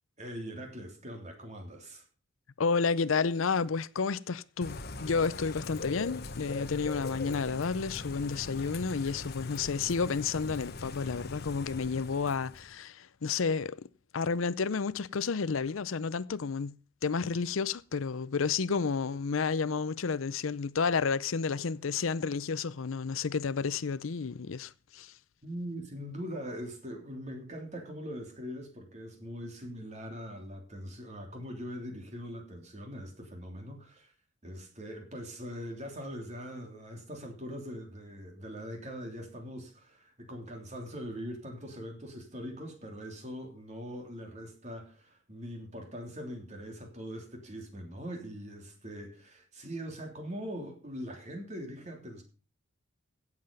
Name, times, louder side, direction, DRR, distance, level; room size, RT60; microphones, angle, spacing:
voice 1, 0.2-2.0 25.4-34.1 34.4-52.2, equal, 35° right, 3.3 m, -42 dB
voice 2, 2.6-13.9 14.1-16.7 17.0-25.1, left 5 dB, 80° left, 0.6 m, -31 dB
Bird / Rain, 4.6-12.8, left 3 dB, 50° left, 1.2 m, -41 dB
16.5 x 7.9 x 5.4 m
head